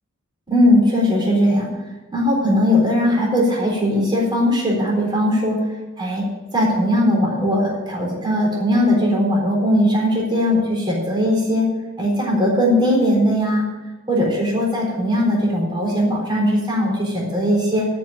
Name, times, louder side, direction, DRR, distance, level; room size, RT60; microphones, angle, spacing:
voice 1, 0.5-1.7 2.1-5.6 6.0-6.2 6.5-11.7 12.0-13.7 14.1-17.9, equal, 20° right, -3 dB, 4.0 m, -19 dB
12.5 x 6.2 x 8.7 m, 1.2 s
head